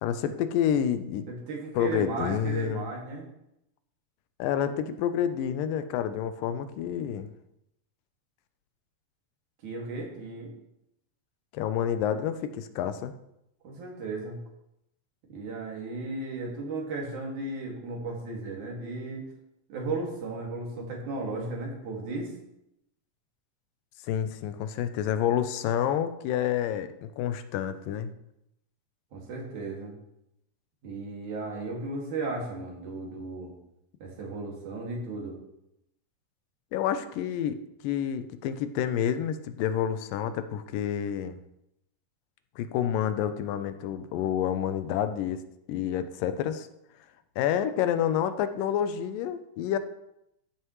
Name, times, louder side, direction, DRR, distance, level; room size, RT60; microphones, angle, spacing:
voice 1, 0.0-1.3 1.8-2.9 4.4-7.3 11.5-13.1 24.1-28.1 36.7-41.4 42.6-45.4 45.7-46.7 47.4-49.8, left 9 dB, 85° left, 11 dB, 2.3 m, -29 dB
voice 2, 1.3-3.3 9.6-10.5 13.6-14.4 15.3-19.3 19.7-22.3 29.1-29.9 30.8-33.5 34.0-35.4, right 3 dB, 65° right, -2 dB, 3.5 m, -35 dB
13.0 x 9.1 x 3.1 m, 0.82 s
omnidirectional pair, 3.9 m